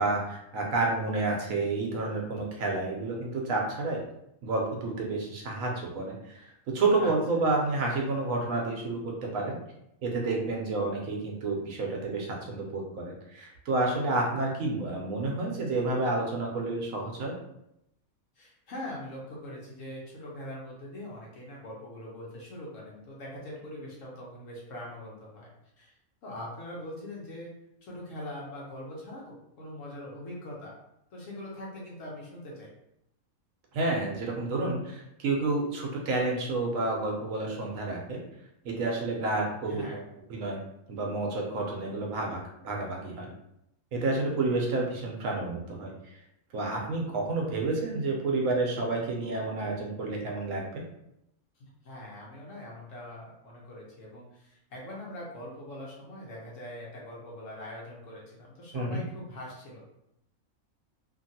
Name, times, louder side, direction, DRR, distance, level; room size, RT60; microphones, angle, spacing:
voice 1, 0.0-4.0 4.4-6.5 6.7-9.6 10.0-17.3 33.7-38.2 38.6-40.0 40.3-40.6 40.9-43.3 43.9-45.9 46.5-50.8 58.7-59.0, right 2 dB, 70° right, 0 dB, 1.0 m, -30 dB
voice 2, 7.0-7.4 18.4-25.5 25.8-25.9 26.2-27.5 27.8-30.7 31.1-32.7 39.7-40.0 51.6-59.9, left 1 dB, 65° left, -4 dB, 1.2 m, -42 dB
2.8 x 2.6 x 2.7 m, 0.80 s
omnidirectional pair, 1.5 m